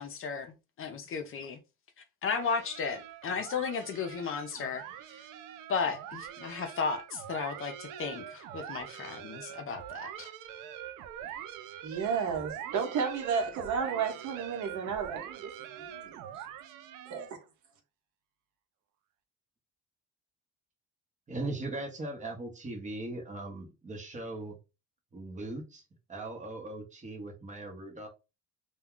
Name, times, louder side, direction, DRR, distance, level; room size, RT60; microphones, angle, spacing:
voice 1, 0.0-1.6 2.2-4.8 5.7-10.3, left 5 dB, 45° left, 0.5 m, -34 dB
sound 1, 2.3-17.4, right 10 dB, 85° right, 0.5 m, -44 dB
voice 2, 11.8-15.5 15.8-16.2 17.1-17.3, right 6 dB, 65° right, 0.9 m, -32 dB
voice 3, 21.3-24.6 25.1-25.8 26.1-28.1, right 2 dB, 25° right, 0.9 m, -39 dB
2.2 x 2.2 x 3.6 m
cardioid pair, 110°, 32 cm